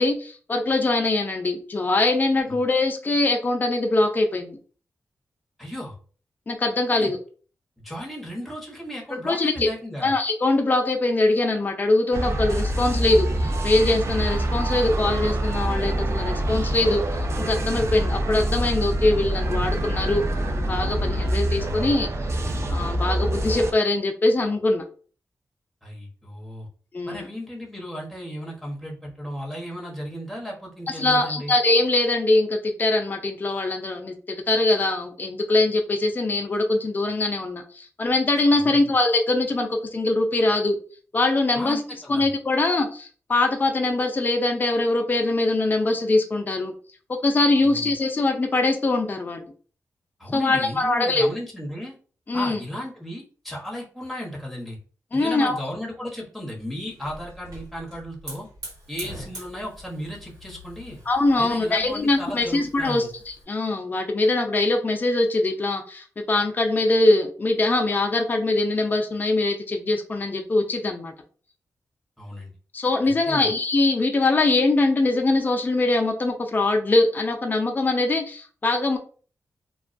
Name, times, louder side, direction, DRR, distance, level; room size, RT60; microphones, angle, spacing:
voice 1, 0.0-4.6 6.5-7.2 9.2-9.7 10.0-22.1 22.7-24.8 26.9-27.2 30.9-34.2 34.5-40.8 41.1-41.8 42.1-46.7 47.2-49.5 50.3-51.3 52.3-52.6 55.1-55.6 61.1-71.1 72.7-79.0, left 2 dB, 30° left, 4 dB, 0.4 m, -22 dB
voice 2, 5.6-6.0 6.9-7.1 7.8-10.1 25.8-26.7 27.1-31.5 38.5-38.9 41.5-42.3 47.6-47.9 50.2-52.0 52.3-54.8 55.1-58.5 58.9-61.0 61.4-63.1 72.2-72.5 73.0-73.5, equal, ahead, -3 dB, 0.9 m, -35 dB
sound 1, 12.1-23.7, right 1 dB, 50° right, 0.4 m, -25 dB
Hiss / Fire, 56.6-63.4, right 1 dB, 85° right, 1.3 m, -43 dB
2.3 x 2.2 x 2.5 m, 0.41 s
wide cardioid pair, 85°, 6 cm